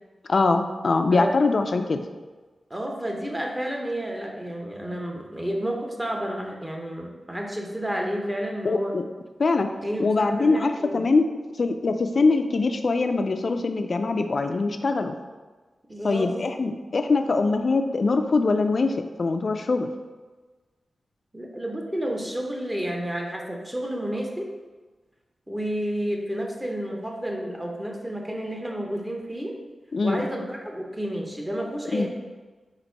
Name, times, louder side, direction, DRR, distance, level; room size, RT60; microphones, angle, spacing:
voice 1, 0.3-2.0 8.6-9.0 9.4-9.7 10.0-11.2 11.6-15.2 16.0-19.9 29.9-30.2 31.9-32.1, left 3 dB, 60° left, 7 dB, 0.3 m, -23 dB
voice 2, 2.7-8.9 9.8-11.0 15.9-16.5 21.3-24.5 25.5-29.6 30.0-32.1, equal, 15° right, 0 dB, 0.8 m, -30 dB
4.0 x 2.5 x 4.5 m, 1.3 s
cardioid pair, 70°, 0 cm